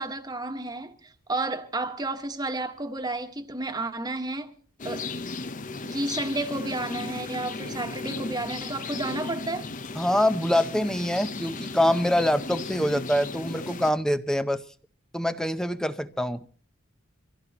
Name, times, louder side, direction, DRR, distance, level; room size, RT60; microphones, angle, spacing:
voice 1, 0.0-4.5 4.8-5.1 5.8-9.7, right 2 dB, 20° right, 1.4 m, -31 dB
sound 1, 4.8-13.9, left 3 dB, 40° left, 0.7 m, -35 dB
voice 2, 10.0-14.6 15.1-16.5, left 1 dB, 5° left, 0.7 m, -25 dB
25.0 x 16.0 x 2.9 m
head